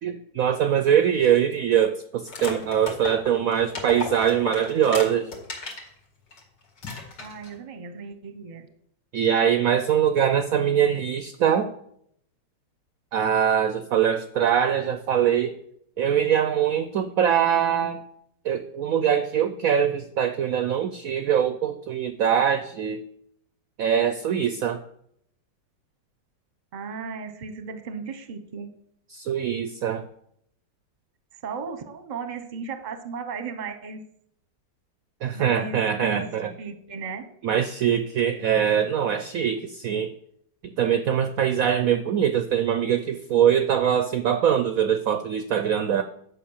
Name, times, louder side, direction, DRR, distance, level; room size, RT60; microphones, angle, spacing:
voice 1, 0.0-5.3 9.1-11.7 13.1-15.6 16.0-18.0 18.4-23.0 23.8-24.8 29.1-30.0 35.2-36.5 37.4-40.1 40.6-46.0, right 9 dB, 70° right, 10 dB, 0.8 m, -23 dB
sound 1, 2.3-5.9 6.3-6.4 6.8-7.5, left 4 dB, 65° left, 2.6 m, -34 dB
voice 2, 7.2-8.7 26.7-28.7 31.4-34.0 35.3-36.2 36.6-37.3, right 5 dB, 35° right, 9 dB, 0.8 m, -35 dB
10.0 x 5.7 x 7.2 m, 0.71 s
omnidirectional pair, 2.0 m